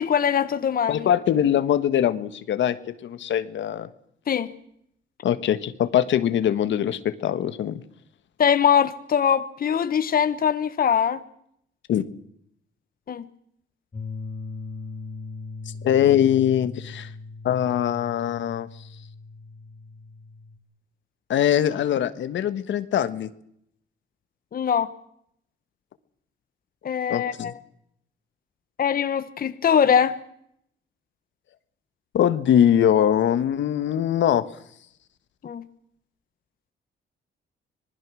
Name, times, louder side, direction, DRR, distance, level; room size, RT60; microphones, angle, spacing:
voice 1, 0.0-1.1 4.3-4.5 8.4-11.2 13.1-13.3 24.5-24.9 26.8-27.5 28.8-30.2 35.4-35.6, left 8 dB, 45° left, 12 dB, 1.3 m, -22 dB
voice 2, 0.9-3.9 5.2-7.8 11.9-12.0 15.8-17.1 17.4-18.7 21.3-23.3 27.1-27.5 32.1-34.5, left 10 dB, 70° left, 12 dB, 1.5 m, -22 dB
sound 1, 13.9-20.6, left 3 dB, 30° left, 3.6 m, -39 dB
26.0 x 20.0 x 6.3 m, 0.73 s
cardioid pair, 90°, 20 cm